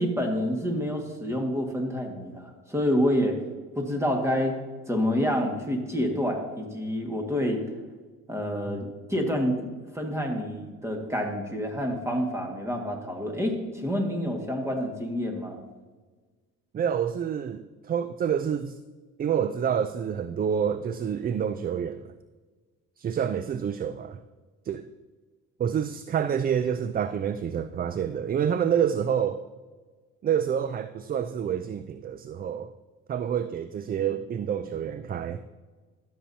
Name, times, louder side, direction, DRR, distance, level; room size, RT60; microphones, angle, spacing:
voice 1, 0.0-3.4 3.8-4.6 4.9-7.6 8.3-9.6 9.9-15.6, equal, 10° right, 2 dB, 1.8 m, -28 dB
voice 2, 16.7-18.8 19.2-22.1 23.0-24.2 24.6-24.9 25.6-29.4 30.2-32.7 33.1-35.4, right 8 dB, 30° right, 12 dB, 0.4 m, -28 dB
13.0 x 7.1 x 2.8 m, 1.4 s
supercardioid pair, 85°, 30 cm